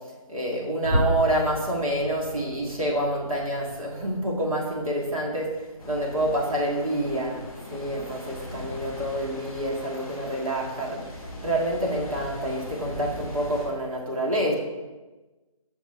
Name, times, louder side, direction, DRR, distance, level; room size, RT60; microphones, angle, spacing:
voice 1, 0.3-5.5 5.8-7.4 7.7-11.0 11.4-14.5, right 1 dB, 70° right, -2 dB, 1.6 m, -27 dB
sound 1, 0.8-7.5 7.8-8.1 8.5-8.7 9.2-9.4, equal, 30° right, 1.8 m, -34 dB
sound 2, 5.8-13.7, left 1 dB, 5° right, 0.6 m, -40 dB
5.8 x 3.2 x 5.4 m, 1.2 s
figure-of-eight pair, 180°, 18 cm